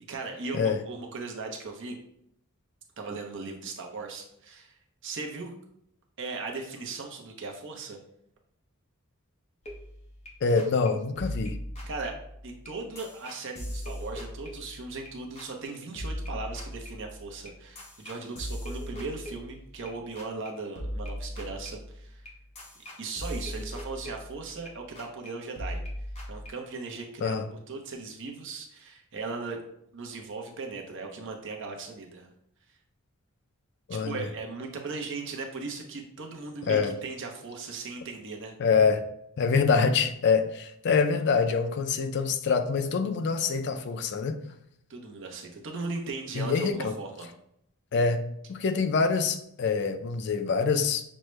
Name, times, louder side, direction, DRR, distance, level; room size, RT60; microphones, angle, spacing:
voice 1, 0.1-2.0 3.0-4.8 5.0-5.5 6.2-8.0 11.9-12.1 12.4-22.3 23.0-25.8 26.3-29.6 29.9-32.3 33.9-38.5 44.9-47.3, right 3 dB, 55° right, 2 dB, 0.7 m, -38 dB
sound 1, 9.6-10.3 10.6-10.9 11.2-15.1 15.4-15.7 16.0-19.9 20.2-20.5 20.8-24.7 25.0-25.3 25.6-26.5, equal, 30° left, 0.9 m, -39 dB
voice 2, 10.4-11.6 27.2-27.4 33.9-34.3 36.7-36.9 38.6-39.0 39.4-44.4 46.3-46.9 47.9-48.2 48.5-51.0, left 5 dB, 50° left, 8 dB, 0.4 m, -25 dB
6.2 x 2.1 x 3.2 m, 0.74 s
head